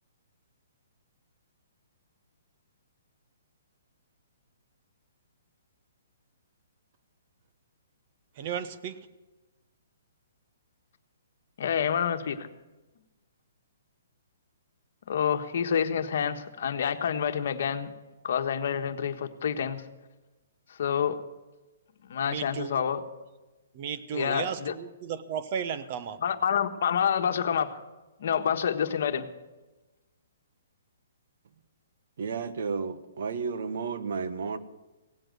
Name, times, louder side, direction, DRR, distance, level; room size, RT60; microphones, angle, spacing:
voice 1, 8.4-9.0 22.3-22.8 23.7-26.2, right 8 dB, 35° right, 11 dB, 1.1 m, -34 dB
voice 2, 11.6-12.5 15.1-17.9 18.2-19.8 20.7-21.2 22.0-23.0 24.1-24.7 26.2-27.8 28.2-29.3, left 8 dB, 60° left, 7 dB, 1.4 m, -28 dB
voice 3, 32.2-34.6, right 5 dB, 60° right, 11 dB, 1.2 m, -32 dB
17.5 x 7.9 x 9.3 m, 1.1 s
hypercardioid pair, 160°, 0 cm